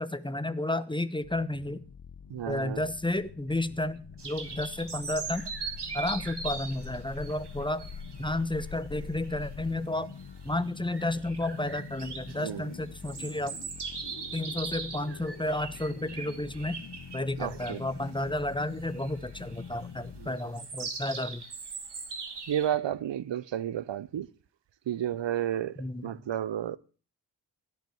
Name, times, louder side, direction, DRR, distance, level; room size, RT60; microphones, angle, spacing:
voice 1, 0.0-1.8 2.5-5.5 5.9-7.8 8.2-10.1 10.4-13.6 14.3-16.8 17.1-21.4 25.8-26.1, left 1 dB, 10° left, 1.1 m, -32 dB
sound 1, 1.2-20.3, left 6 dB, 50° left, 0.9 m, -47 dB
sound 2, 2.2-9.7, left 6 dB, 80° left, 2.2 m, -45 dB
voice 2, 2.3-2.9 12.4-12.7 17.4-17.8 20.2-20.4 22.5-24.3 24.9-25.8 26.0-26.8, right 10 dB, 90° right, 0.7 m, -32 dB
sound 3, 4.2-22.7, right 4 dB, 70° right, 2.4 m, -41 dB
16.5 x 5.7 x 9.2 m
cardioid pair, 55°, 42 cm